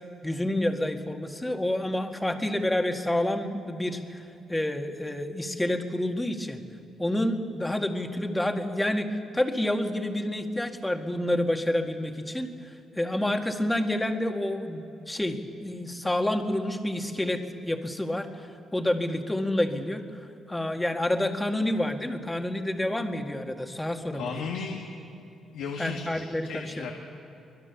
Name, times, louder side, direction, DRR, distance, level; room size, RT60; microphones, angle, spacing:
voice 1, 0.2-4.2 4.5-6.6 7.0-9.1 9.3-24.4 25.8-26.9, left 1 dB, 10° left, 4 dB, 1.8 m, -29 dB
voice 2, 24.1-24.8 25.5-26.9, left 5 dB, 90° left, 1 dB, 1.7 m, -35 dB
24.0 x 20.5 x 7.1 m, 2.8 s
cardioid pair, 90°, 0 cm